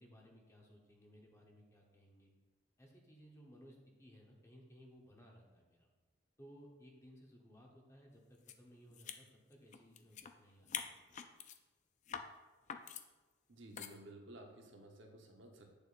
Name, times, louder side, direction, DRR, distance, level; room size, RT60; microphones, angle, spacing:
voice 1, 0.0-2.3 2.8-5.9 6.4-11.2, equal, 15° left, -1 dB, 1.0 m, -60 dB
sound 1, 8.5-8.6 8.9-10.3 10.6-11.6 12.1-12.3 12.7-13.1 13.8-14.0, left 8 dB, 40° left, 0.4 m, -45 dB
voice 2, 13.5-15.8, right 1 dB, 70° right, 2 dB, 1.0 m, -55 dB
8.8 x 6.8 x 2.5 m, 1.2 s
head